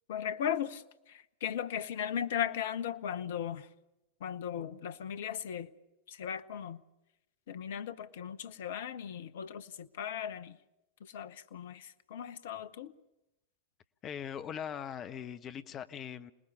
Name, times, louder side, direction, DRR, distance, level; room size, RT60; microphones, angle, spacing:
voice 1, 0.1-3.7 4.2-5.7 6.1-6.8 7.5-10.6 11.0-12.9, left 9 dB, 55° left, 1.0 m, -37 dB
voice 2, 14.0-16.3, left 8 dB, 30° left, 1.1 m, -40 dB
27.5 x 20.0 x 6.9 m
figure-of-eight pair, 90°, 0 cm